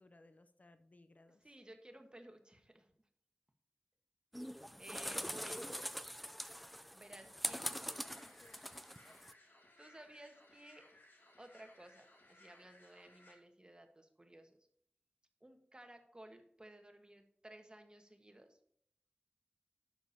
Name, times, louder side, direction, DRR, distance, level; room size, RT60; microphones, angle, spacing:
voice 1, 0.0-1.5 5.3-5.7 7.2-7.3 7.7-8.8, left 2 dB, 45° left, 10 dB, 0.6 m, -62 dB
voice 2, 1.4-2.9 4.8-5.7 6.9-7.7 9.3-10.9 11.4-14.6 15.4-18.6, right 1 dB, 25° right, 5 dB, 1.4 m, -57 dB
sound 1, 4.3-9.3, equal, ahead, 0.4 m, -43 dB
sound 2, 7.9-13.3, left 2 dB, 70° left, 1.9 m, -64 dB
11.0 x 6.9 x 2.8 m, 0.69 s
wide cardioid pair, 60°, 4 cm